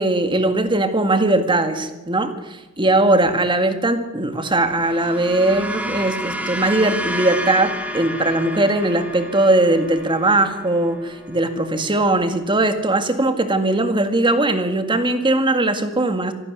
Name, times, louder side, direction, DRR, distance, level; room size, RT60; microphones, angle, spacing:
voice 1, 0.0-16.3, right 2 dB, 25° right, 8 dB, 1.9 m, -19 dB
sound 1, 4.6-13.0, equal, 5° right, 2.2 m, -31 dB
25.5 x 11.5 x 9.5 m, 1.1 s
head